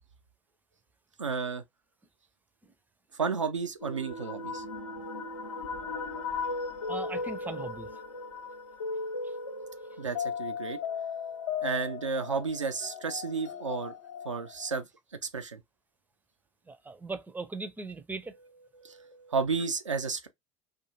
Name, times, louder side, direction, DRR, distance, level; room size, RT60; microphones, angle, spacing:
voice 1, 1.2-1.6 3.1-4.6 10.0-10.8 11.6-13.9 14.2-14.9 15.2-15.6 18.7-20.3, right 5 dB, 85° right, 0.4 m, -32 dB
sound 1, 3.8-14.8, left 4 dB, 75° left, 0.5 m, -37 dB
voice 2, 6.9-7.9 16.7-18.3, right 3 dB, 10° right, 0.4 m, -39 dB
2.5 x 2.4 x 2.8 m
figure-of-eight pair, 65°, 15 cm